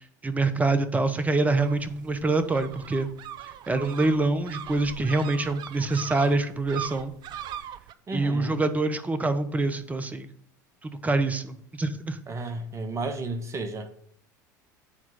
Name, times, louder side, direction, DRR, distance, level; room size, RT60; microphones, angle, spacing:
voice 1, 0.2-3.1 3.7-7.1 8.1-10.3 10.8-12.2, right 3 dB, 15° right, 1.0 m, -25 dB
sound 1, 1.5-7.9, right 10 dB, 50° right, 0.6 m, -40 dB
voice 2, 8.1-8.6 12.3-13.9, right 2 dB, 30° right, 1.3 m, -33 dB
8.7 x 4.5 x 5.7 m
hypercardioid pair, 80°, 10 cm